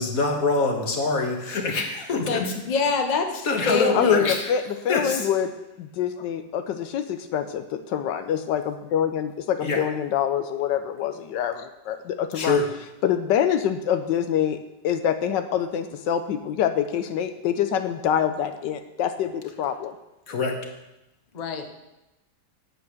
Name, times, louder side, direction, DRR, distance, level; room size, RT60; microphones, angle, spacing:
voice 1, 0.0-2.5 3.4-4.5 4.9-5.3 9.6-9.8 12.3-12.7 20.3-20.5, left 3 dB, 50° left, 3 dB, 1.9 m, -24 dB
voice 2, 2.7-4.3 21.3-21.7, left 4 dB, 30° left, 5 dB, 0.9 m, -25 dB
voice 3, 3.9-5.5 5.8-12.6 13.0-14.6 14.8-19.9, left 9 dB, 85° left, 9 dB, 1.3 m, -25 dB
9.6 x 7.9 x 6.5 m, 0.95 s
omnidirectional pair, 1.9 m